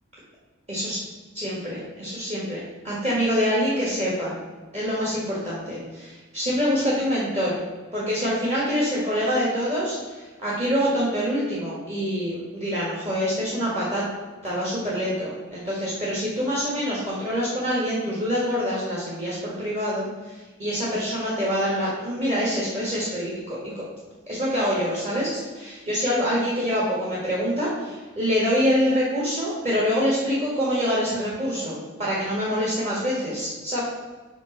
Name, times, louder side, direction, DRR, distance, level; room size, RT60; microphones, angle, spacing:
voice 1, 0.7-1.0 1.3-4.3 4.7-7.6 7.9-14.0 14.4-23.8 24.3-33.8, equal, 35° right, -7 dB, 1.8 m, -25 dB
5.2 x 5.1 x 5.7 m, 1.3 s
head